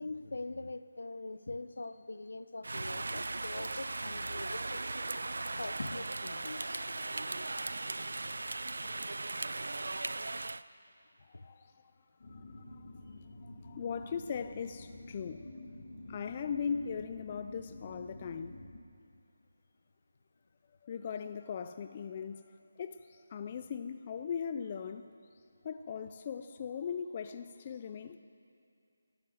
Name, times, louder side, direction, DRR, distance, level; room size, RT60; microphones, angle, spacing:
voice 1, 0.0-4.8 5.6-6.9 7.7-7.8 8.2-8.5 8.8-8.9 11.3-11.5 13.2-13.3, left 2 dB, 80° left, 13 dB, 0.8 m, -43 dB
Rain, 2.6-10.6, right 2 dB, 80° right, 0.4 m, -38 dB
voice 2, 6.7-8.0 11.3-11.9 12.3-12.9 13.4-15.7 16.1-18.5 20.8-22.4 22.8-25.1 25.6-28.2, left 7 dB, 20° left, 10 dB, 0.3 m, -40 dB
sound 1, 12.2-18.8, left 2 dB, 45° left, 2.0 m, -49 dB
15.0 x 12.0 x 7.9 m, 2.4 s
figure-of-eight pair, 180°, 0 cm